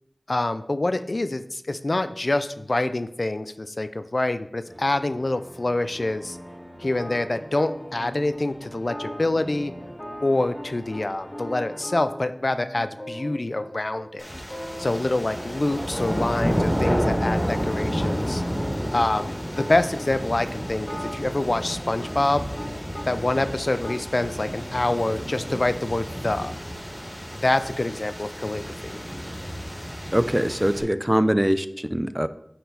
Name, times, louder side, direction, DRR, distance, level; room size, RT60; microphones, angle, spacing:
voice 1, 0.3-6.4 6.8-9.7 10.2-14.3 14.8-18.4 18.9-22.4 23.1-26.5 27.4-29.0, left 2 dB, 65° left, 11 dB, 0.4 m, -26 dB
sound 1, 4.6-11.8, equal, 35° right, 2.6 m, -44 dB
sound 2, 5.9-8.0 8.3-8.4 8.8-11.0 11.3-13.7 14.0-14.1 14.3-14.9 15.2-17.0 17.4-20.1 20.7-23.1 23.3-23.9, equal, 25° left, 1.6 m, -38 dB
sound 3, 14.2-30.8, equal, 5° left, 2.8 m, -30 dB
voice 2, 30.1-32.3, equal, 15° right, 13 dB, 0.4 m, -22 dB
9.2 x 4.4 x 4.0 m, 0.75 s
wide cardioid pair, 45°, 0 cm